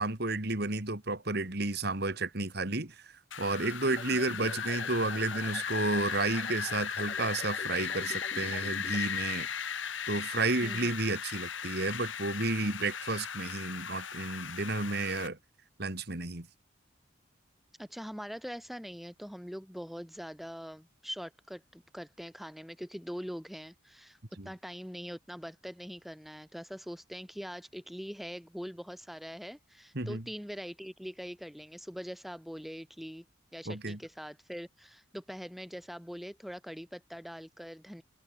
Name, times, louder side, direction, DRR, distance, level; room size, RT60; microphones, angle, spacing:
voice 1, 0.0-9.5 10.1-15.4 15.8-16.5 24.4-24.5 29.9-30.2 33.7-34.0, right 2 dB, 50° right, 2.5 m, -32 dB
Wind, 3.3-15.3, left 7 dB, 70° left, 3.7 m, -37 dB
sound 1, 3.9-9.0, left 3 dB, 35° left, 1.6 m, -46 dB
voice 2, 17.8-24.2 24.4-33.3 33.5-38.0, equal, ahead, 1.3 m, -43 dB
head